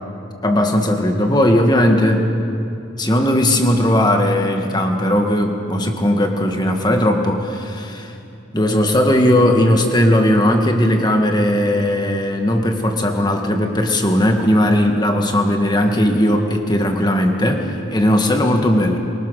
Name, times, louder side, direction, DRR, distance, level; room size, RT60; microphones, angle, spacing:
voice 1, 0.4-2.3 3.0-8.1 8.5-19.0, left 1 dB, 20° left, 3 dB, 1.7 m, -17 dB
23.5 x 21.0 x 6.5 m, 2.7 s
head